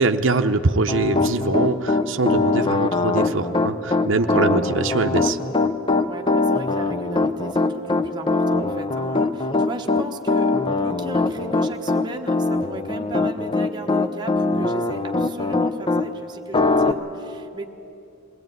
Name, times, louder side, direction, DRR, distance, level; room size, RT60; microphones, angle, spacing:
voice 1, 0.0-5.4, right 3 dB, 65° right, 5 dB, 0.7 m, -22 dB
Piano, 0.9-16.1 16.5-16.9, left 3 dB, 25° left, 0.7 m, -21 dB
voice 2, 6.1-17.7, right 1 dB, 20° right, 2 dB, 1.1 m, -36 dB
21.5 x 17.0 x 9.3 m, 2.7 s
head